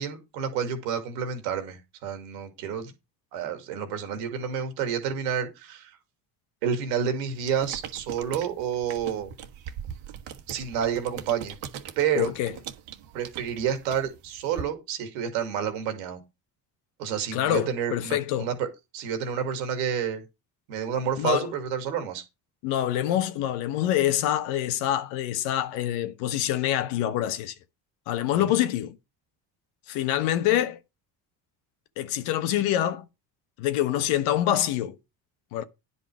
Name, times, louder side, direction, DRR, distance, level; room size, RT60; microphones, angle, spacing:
voice 1, 0.0-2.9 3.3-6.0 6.6-9.3 10.5-11.6 12.0-12.3 13.1-16.2 17.0-18.7 18.9-20.2 20.7-22.2 28.5-28.6, right 8 dB, 85° right, 2.4 m, -29 dB
sound 1, 7.4-14.6, right 9 dB, 70° right, 1.6 m, -41 dB
voice 2, 12.2-12.5 17.3-18.5 21.2-21.5 22.6-27.5 28.1-29.0 29.9-30.8 32.0-33.1 33.6-35.0 35.5-35.6, left 12 dB, 80° left, 1.2 m, -26 dB
9.9 x 5.5 x 6.1 m
hypercardioid pair, 60°, 49 cm